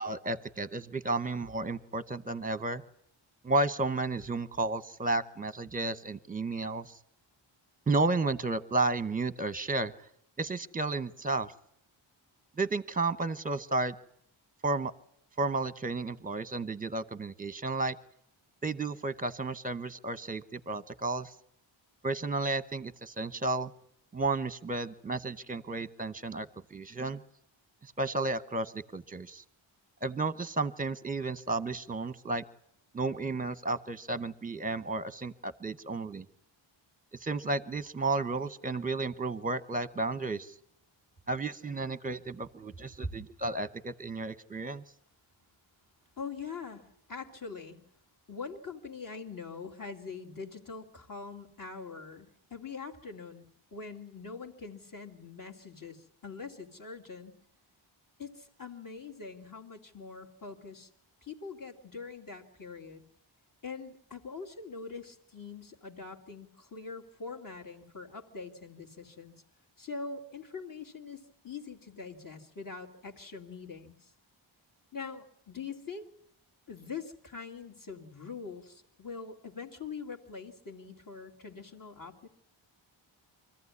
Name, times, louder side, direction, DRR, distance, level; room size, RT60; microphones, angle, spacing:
voice 1, 0.0-2.8 3.4-7.0 7.9-9.9 10.4-11.5 12.6-13.9 14.6-14.9 15.4-17.9 18.6-21.3 22.0-23.7 24.1-27.2 28.0-29.4 30.0-32.4 32.9-36.3 37.2-40.5 41.3-44.8, right 3 dB, 15° right, 15 dB, 0.9 m, -32 dB
voice 2, 46.2-47.8 48.3-53.4 53.7-57.4 58.2-60.9 61.2-63.0 63.6-69.3 69.8-74.1 74.9-76.1 76.7-82.3, left 4 dB, 40° left, 2 dB, 2.6 m, -43 dB
24.5 x 15.0 x 9.7 m, 0.72 s
wide cardioid pair, 100°, 48 cm